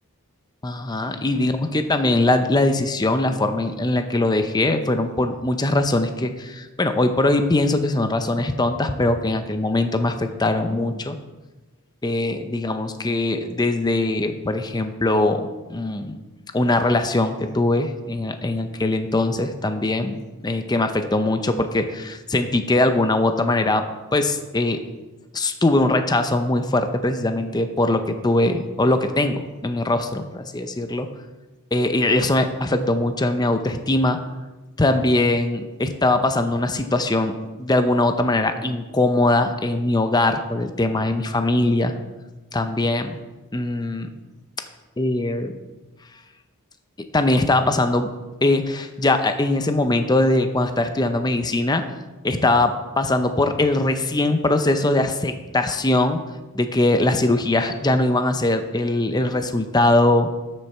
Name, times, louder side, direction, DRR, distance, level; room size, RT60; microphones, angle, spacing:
voice 1, 0.6-11.2 12.0-16.2 16.5-24.8 25.3-31.1 31.7-34.2 34.8-41.9 42.5-43.2 43.5-44.1 45.0-45.6 47.0-48.1 48.4-51.8 52.2-56.2 56.5-60.3, left 2 dB, 20° left, 8 dB, 0.6 m, -21 dB
12.5 x 6.5 x 4.4 m, 1.2 s
head